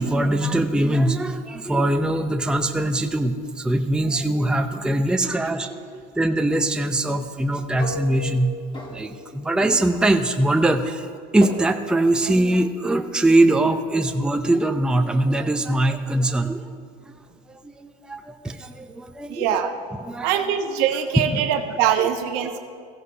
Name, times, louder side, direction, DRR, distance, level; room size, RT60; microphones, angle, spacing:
voice 1, 0.0-8.5 8.9-11.1 11.3-16.6 17.0-17.1 17.5-19.6 20.1-20.3 21.3-21.4 22.0-22.1, right 1 dB, 5° right, 6 dB, 0.6 m, -22 dB
sound 1, 7.8-9.4 9.6-10.1 11.4-11.5, left 1 dB, 25° left, 2.6 m, -34 dB
voice 2, 19.3-19.7 20.2-22.6, right 9 dB, 70° right, 5 dB, 1.2 m, -23 dB
16.0 x 15.0 x 2.8 m, 2.2 s
supercardioid pair, 100°, 20 cm